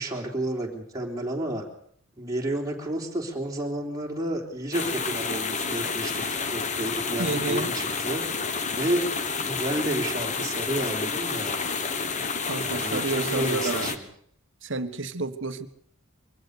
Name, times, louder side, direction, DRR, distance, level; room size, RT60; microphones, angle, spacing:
voice 1, 0.0-1.6 2.2-8.2 8.7-9.1 9.5-11.6 12.6-14.0, right 1 dB, 15° right, 0 dB, 3.7 m, -31 dB
sound 1, 4.7-14.0, left 4 dB, 35° left, 1.4 m, -29 dB
voice 2, 7.2-7.7 12.5-13.9 14.6-15.7, right 3 dB, 55° right, 10 dB, 1.5 m, -30 dB
23.5 x 16.5 x 6.7 m, 0.66 s
head